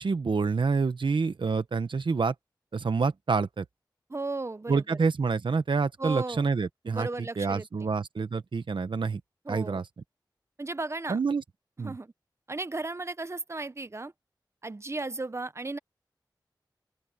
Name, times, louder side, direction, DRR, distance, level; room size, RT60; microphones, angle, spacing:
voice 1, 0.0-2.3 2.7-3.6 4.7-7.1 7.4-9.2 9.5-9.8 11.1-11.4 11.8-12.0, right 4 dB, 85° right, 1.1 m, -27 dB
voice 2, 4.1-5.0 6.0-6.5 6.9-7.9 9.4-9.8 10.6-11.2 11.8-12.1 12.5-14.1 14.6-15.8, right 2 dB, 35° right, 0.8 m, -35 dB
open air
wide cardioid pair, 60°, 8 cm